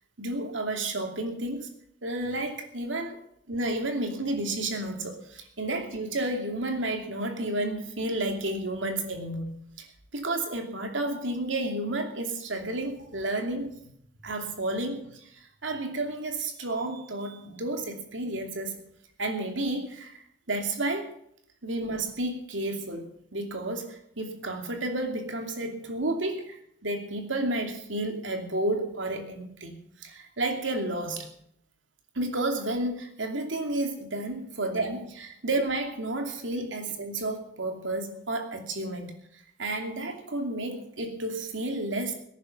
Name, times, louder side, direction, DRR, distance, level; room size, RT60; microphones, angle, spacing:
voice 1, 0.2-1.7 2.0-9.9 10.1-13.7 14.2-18.8 19.2-20.2 20.5-21.1 21.6-29.7 30.0-31.3 32.1-39.1 39.6-42.2, right 2 dB, 80° right, 4 dB, 2.8 m, -31 dB
18.0 x 10.5 x 5.5 m, 0.69 s
head